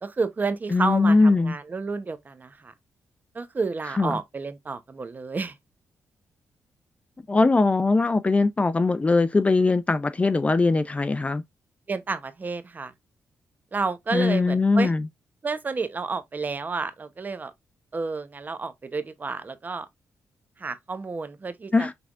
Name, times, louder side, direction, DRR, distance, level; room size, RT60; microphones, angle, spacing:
voice 1, 0.0-2.7 3.3-5.6 11.9-12.9 13.7-14.9 15.4-17.5 17.9-19.9 20.6-21.9, right 4 dB, 35° right, 0.8 m, -30 dB
voice 2, 0.7-1.5 4.0-4.2 7.3-11.4 14.1-15.1 21.7-21.9, left 3 dB, 25° left, 0.4 m, -21 dB
6.0 x 3.4 x 2.4 m
cardioid pair, 80°, 5 cm